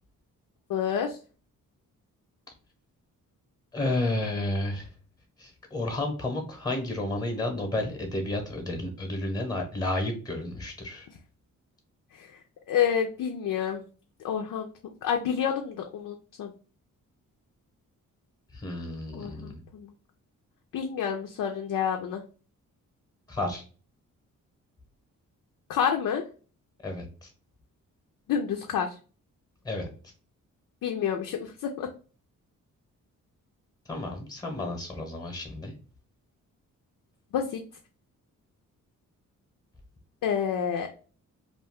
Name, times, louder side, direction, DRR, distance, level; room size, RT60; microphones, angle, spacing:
voice 1, 0.7-1.2 12.1-12.4 12.7-13.8 14.2-14.7 15.0-16.5 19.1-19.9 20.7-22.2 25.7-26.2 28.3-28.9 30.8-31.9 37.3-37.6 40.2-40.9, left 8 dB, 70° left, 3 dB, 0.5 m, -29 dB
voice 2, 3.7-4.9 5.4-11.1 18.5-19.6 23.3-23.6 26.8-27.3 29.6-30.1 33.9-35.7, left 2 dB, 10° left, 4 dB, 0.9 m, -31 dB
2.5 x 2.2 x 3.5 m, 0.37 s
cardioid pair, 80°, 33 cm